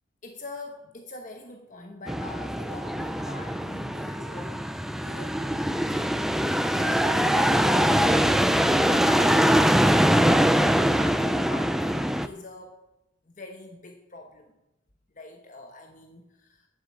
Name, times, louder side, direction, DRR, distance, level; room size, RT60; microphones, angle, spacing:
voice 1, 0.2-5.4 5.9-12.8 13.2-14.5 15.1-16.7, left 2 dB, 40° left, 3 dB, 1.1 m, -43 dB
sound 1, 2.1-12.3, equal, ahead, 0.4 m, -23 dB
9.9 x 7.4 x 7.6 m, 0.93 s
head